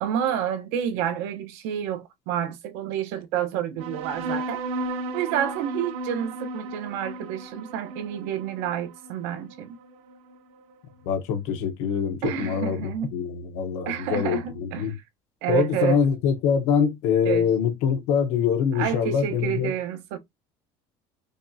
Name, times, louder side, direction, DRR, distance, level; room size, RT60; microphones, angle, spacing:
voice 1, 0.0-4.6 5.1-9.8 12.2-13.1 13.9-14.9 15.4-16.0 17.2-17.4 18.7-20.2, right 10 dB, 85° right, 0.9 m, -29 dB
sound 1, 3.8-10.7, right 2 dB, 55° right, 0.8 m, -35 dB
voice 2, 11.1-15.0 15.5-19.7, left 7 dB, 75° left, 0.9 m, -24 dB
5.2 x 2.3 x 2.6 m
cardioid pair, 165°, 12 cm